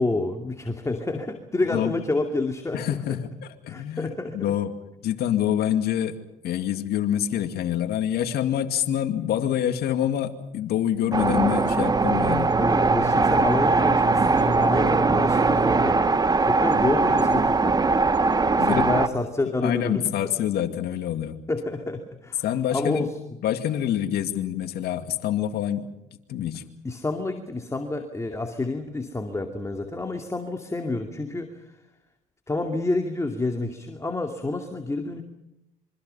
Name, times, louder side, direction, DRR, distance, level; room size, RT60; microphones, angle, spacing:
voice 1, 0.0-3.0 3.7-4.4 12.6-16.1 16.4-17.9 18.6-20.0 21.5-22.4 22.7-23.2 26.8-31.6 32.5-35.2, left 2 dB, 20° left, 5 dB, 2.5 m, -28 dB
voice 2, 1.6-1.9 2.7-3.3 3.6-4.7 5.0-6.2 6.4-12.5 18.6-18.9 19.6-21.4 22.4-23.1 23.4-25.9 26.3-26.6, left 10 dB, 75° left, 8 dB, 2.3 m, -26 dB
sound 1, 11.1-19.1, right 3 dB, 25° right, 1.2 m, -21 dB
27.0 x 24.5 x 5.6 m, 0.88 s
supercardioid pair, 75°, 17 cm